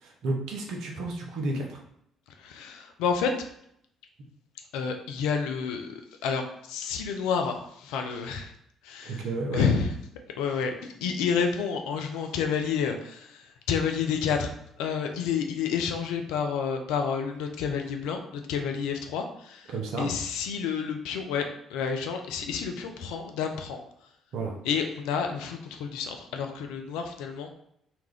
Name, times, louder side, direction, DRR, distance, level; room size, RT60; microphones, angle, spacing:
voice 1, 0.0-1.8 9.0-9.7 19.7-20.1 24.3-24.5, right 2 dB, 65° right, 1 dB, 0.6 m, -31 dB
voice 2, 2.4-3.3 4.7-8.5 8.8-9.3 9.5-9.9 10.4-14.5 14.8-23.8 24.6-27.5, left 6 dB, 70° left, 4 dB, 0.4 m, -29 dB
2.5 x 2.2 x 3.3 m, 0.72 s
hypercardioid pair, 50°, 0 cm